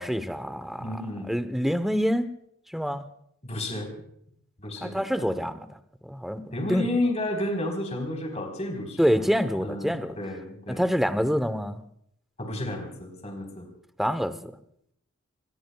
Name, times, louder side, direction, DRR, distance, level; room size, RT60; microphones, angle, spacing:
voice 1, 0.0-0.9 1.3-2.3 2.7-3.0 4.8-5.7 6.0-6.9 9.0-10.2 10.7-11.8 14.0-14.5, equal, ahead, 10 dB, 0.8 m, -26 dB
voice 2, 0.8-1.3 3.4-3.9 4.6-5.3 6.5-9.2 9.6-9.9 10.2-10.8 12.4-13.7, left 1 dB, 30° left, 2 dB, 3.9 m, -31 dB
26.5 x 21.0 x 2.3 m, 0.70 s
head